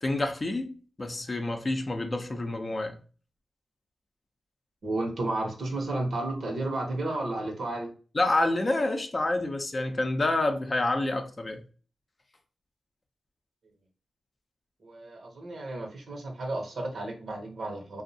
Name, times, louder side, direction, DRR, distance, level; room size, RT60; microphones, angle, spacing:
voice 1, 0.0-3.0 8.1-11.6, left 2 dB, 40° left, 0.5 m, -28 dB
voice 2, 4.8-7.9 14.8-18.0, right 2 dB, 70° right, 0.7 m, -32 dB
2.5 x 2.0 x 2.6 m
cardioid pair, 50°, 0 cm